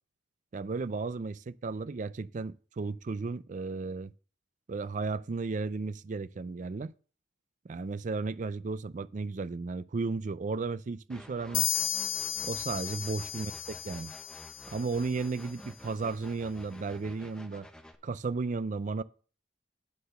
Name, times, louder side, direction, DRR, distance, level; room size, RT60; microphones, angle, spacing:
voice 1, 0.5-4.1 4.7-6.9 7.6-11.8 12.4-14.1 14.7-17.7 18.0-19.0, right 4 dB, 40° right, 0.4 m, -34 dB
sound 1, 11.1-17.9, equal, 5° left, 0.7 m, -51 dB
sound 2, 11.5-15.1, left 12 dB, 80° left, 0.8 m, -34 dB
9.5 x 4.4 x 6.6 m
head